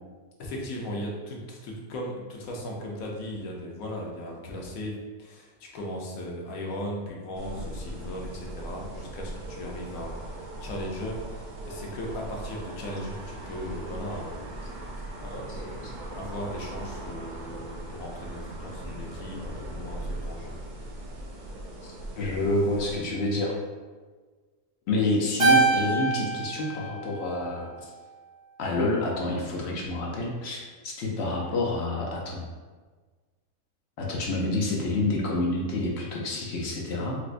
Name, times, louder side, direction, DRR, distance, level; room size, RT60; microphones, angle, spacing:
voice 1, 0.4-20.6, left 1 dB, 85° left, -1 dB, 1.1 m, -37 dB
sound 1, 7.3-23.0, right 1 dB, 80° right, 0.4 m, -39 dB
voice 2, 21.8-23.5 24.9-27.7 28.6-32.5 34.0-37.2, left 2 dB, 65° left, -2 dB, 0.7 m, -28 dB
Keyboard (musical), 25.4-27.9, right 3 dB, 50° right, 1.2 m, -25 dB
4.4 x 2.1 x 2.5 m, 1.4 s
omnidirectional pair, 1.4 m